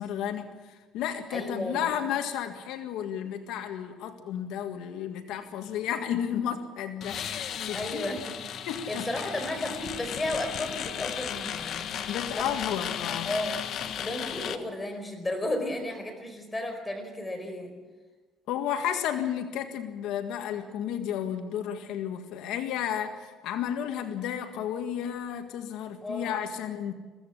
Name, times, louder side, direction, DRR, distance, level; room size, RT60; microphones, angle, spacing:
voice 1, 0.0-7.2 7.6-8.1 8.7-9.1 12.1-13.3 18.5-26.9, left 9 dB, 85° left, 6 dB, 1.8 m, -32 dB
voice 2, 1.3-1.9 7.7-8.4 8.9-11.9 12.3-12.5 13.2-13.6 14.0-17.7 26.0-26.4, left 1 dB, 15° left, 4 dB, 4.8 m, -33 dB
sound 1, 7.0-14.6, left 9 dB, 60° left, 1.4 m, -35 dB
22.5 x 16.5 x 8.4 m, 1.3 s
cardioid pair, 130°, 0 cm